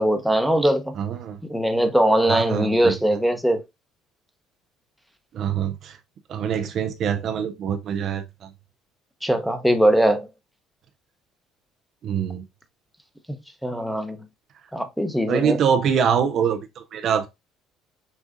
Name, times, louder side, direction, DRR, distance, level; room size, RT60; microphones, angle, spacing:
voice 1, 0.0-0.9 1.4-3.6 9.2-10.3 13.3-14.2 14.7-15.6, right 1 dB, ahead, 0.8 m, -21 dB
voice 2, 1.0-1.4 2.3-2.9 5.3-6.0 6.3-8.5 12.0-12.4 15.3-17.3, right 7 dB, 55° right, 0.5 m, -24 dB
6.2 x 2.4 x 2.5 m
hypercardioid pair, 60°, 0 cm